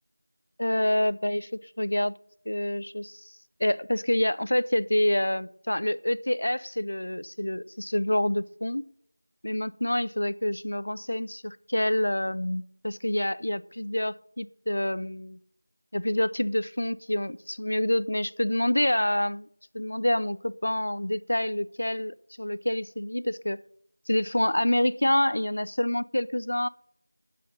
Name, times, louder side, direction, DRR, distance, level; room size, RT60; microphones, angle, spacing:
voice 1, 0.6-2.1 2.5-8.8 9.4-15.4 15.9-19.5 19.7-23.6 24.1-26.7, left 1 dB, 55° left, 16 dB, 0.5 m, -27 dB
9.4 x 7.5 x 8.7 m, 0.67 s
figure-of-eight pair, 175°, 0 cm